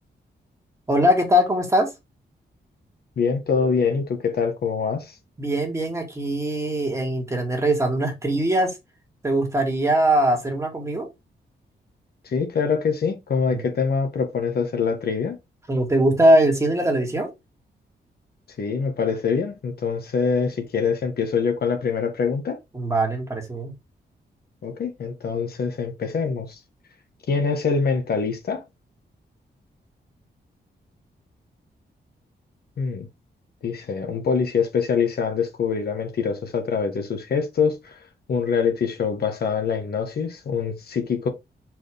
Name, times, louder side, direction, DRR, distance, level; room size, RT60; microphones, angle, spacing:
voice 1, 0.9-1.9 5.4-8.8 9.2-11.1 13.5-13.6 15.7-17.3 22.7-23.7, right 1 dB, 15° right, 1.9 m, -21 dB
voice 2, 3.2-5.2 12.2-15.4 18.6-22.6 24.6-26.6 27.3-28.6 32.8-33.1 33.6-38.0 38.3-41.3, left 5 dB, 60° left, 1.3 m, -24 dB
6.1 x 4.6 x 3.5 m
wide cardioid pair, 150°, 18 cm